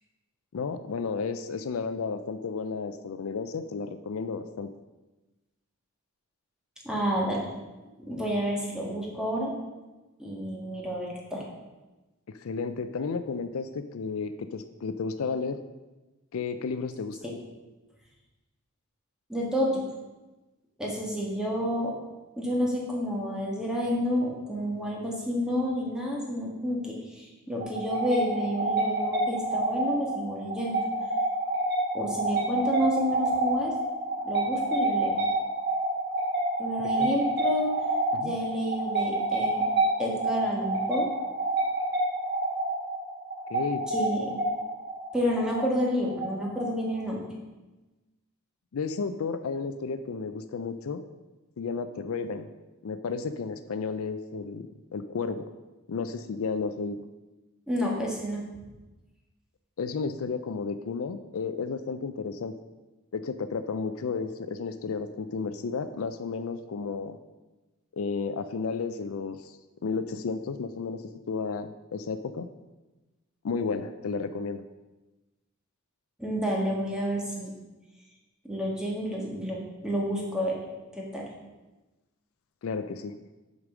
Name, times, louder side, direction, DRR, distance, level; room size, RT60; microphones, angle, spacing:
voice 1, 0.5-4.7 12.3-15.6 16.3-17.2 36.8-37.1 38.1-38.3 43.5-43.9 48.7-51.0 51.6-52.5 52.8-54.7 54.9-55.4 55.9-57.0 59.8-62.5 63.1-67.2 67.9-69.5 69.8-71.0 71.3-72.5 73.4-74.6 82.6-83.2, left 5 dB, 70° left, 10 dB, 0.4 m, -32 dB
voice 2, 6.8-7.5 8.0-9.5 10.2-11.4 19.3-19.8 20.8-21.9 22.4-30.8 31.9-33.7 34.3-35.1 36.6-37.7 38.2-39.6 40.0-41.1 43.9-44.3 45.1-47.2 57.7-58.4 76.2-77.5 78.4-80.6 80.9-81.3, equal, 5° right, -3 dB, 1.6 m, -29 dB
sound 1, 27.6-47.0, right 2 dB, 50° right, 2.4 m, -28 dB
6.6 x 5.2 x 6.1 m, 1.1 s
head